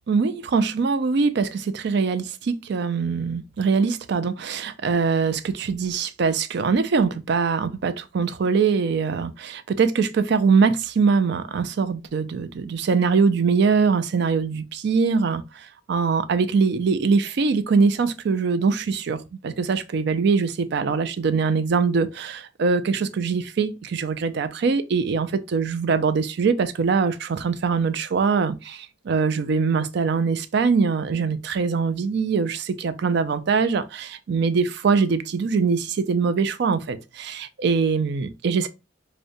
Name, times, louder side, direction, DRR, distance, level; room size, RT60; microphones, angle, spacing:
voice 1, 0.1-19.2 19.4-38.7, right 5 dB, 60° right, 0.4 m, -22 dB
4.9 x 2.1 x 2.6 m
head